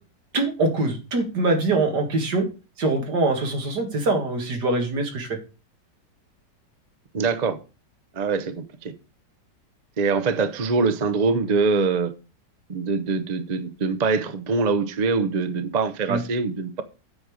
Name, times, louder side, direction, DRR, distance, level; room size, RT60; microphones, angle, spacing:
voice 1, 0.3-2.5 2.8-5.3 16.1-16.2, right 2 dB, 70° right, 2.4 m, -23 dB
voice 2, 7.1-7.6 8.1-8.9 10.0-12.1 12.7-16.8, right 4 dB, 40° right, 0.6 m, -23 dB
8.6 x 5.2 x 6.4 m
omnidirectional pair, 1.9 m